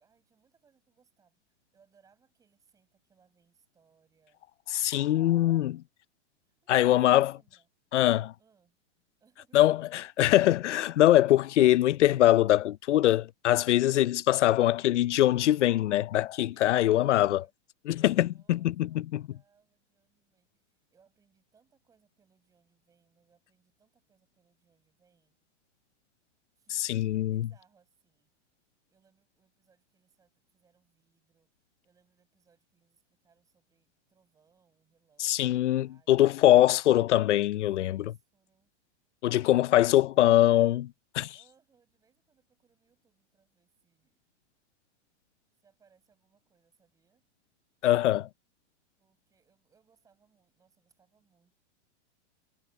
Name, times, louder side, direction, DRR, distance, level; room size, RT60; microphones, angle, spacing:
voice 1, 0.0-4.4 6.4-7.7 8.4-8.8 9.2-10.2 16.2-17.5 18.3-25.4 26.6-28.3 28.9-31.5 31.8-36.3 37.4-38.7 39.2-40.6 41.3-44.2 45.6-47.2 49.0-51.6, right 6 dB, 10° right, 7.3 m, -69 dB
voice 2, 4.7-5.8 6.7-7.3 7.9-8.3 9.5-17.4 17.9-19.2 26.7-27.5 35.2-38.0 39.2-40.8 41.1-41.3 47.8-48.3, left 14 dB, 80° left, 0.7 m, -23 dB
supercardioid pair, 175°, 36 cm